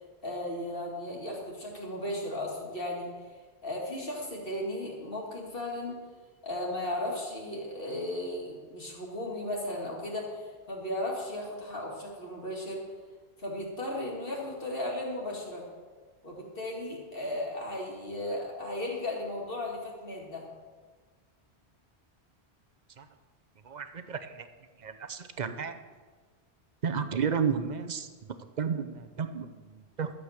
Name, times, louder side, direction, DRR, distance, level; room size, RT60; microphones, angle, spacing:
voice 1, 0.2-3.1 3.6-6.0 6.4-12.8 13.4-15.6 16.2-20.4, left 1 dB, 55° left, -2 dB, 2.5 m, -35 dB
voice 2, 23.6-24.5 24.8-25.8 26.8-30.1, right 6 dB, 45° right, 9 dB, 0.8 m, -33 dB
12.0 x 7.7 x 6.5 m, 1.4 s
omnidirectional pair, 1.1 m